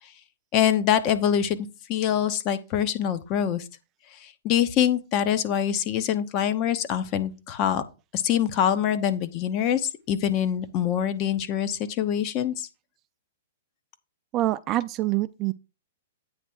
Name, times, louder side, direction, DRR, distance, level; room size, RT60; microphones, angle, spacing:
voice 1, 0.5-1.6 1.9-3.7 4.1-7.8 8.1-12.7, left 9 dB, 35° left, 0.9 m, -24 dB
voice 2, 14.3-15.5, right 16 dB, 30° right, 0.4 m, -25 dB
9.0 x 3.4 x 6.3 m
hypercardioid pair, 140°, 0 cm